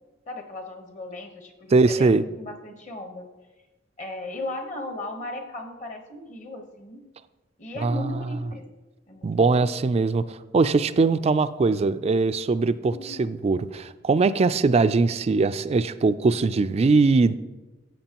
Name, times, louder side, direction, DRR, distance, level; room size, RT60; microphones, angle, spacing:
voice 1, 0.3-3.3 4.0-7.0 7.6-8.6 9.1-9.6 12.9-13.3, left 2 dB, 40° left, 4 dB, 1.1 m, -37 dB
voice 2, 1.7-2.2 7.8-8.1 9.2-17.4, right 3 dB, 30° right, 13 dB, 0.3 m, -21 dB
14.5 x 7.5 x 3.0 m, 1.2 s
head